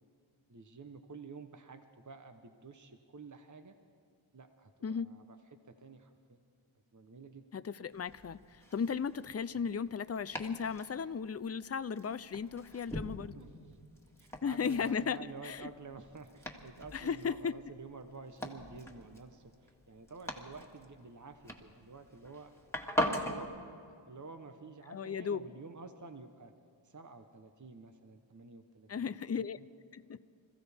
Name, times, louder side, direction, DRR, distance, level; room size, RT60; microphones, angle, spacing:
voice 1, 0.5-3.7 4.3-5.4 5.7-6.4 6.9-7.5 9.5-9.7 13.3-13.8 14.2-22.5 22.9-23.7 24.1-26.5 26.8-29.7, right 4 dB, 35° right, 7 dB, 1.0 m, -50 dB
voice 2, 7.5-13.3 14.4-15.2 15.4-15.7 16.9-17.5 24.9-25.5 28.9-29.6 29.9-30.0, left 6 dB, 30° left, 15 dB, 0.5 m, -35 dB
Domestic sounds home sounds, 7.9-23.5, left 1 dB, 5° left, 2.0 m, -42 dB
27.0 x 15.0 x 3.5 m, 2.4 s
wide cardioid pair, 40°, 49 cm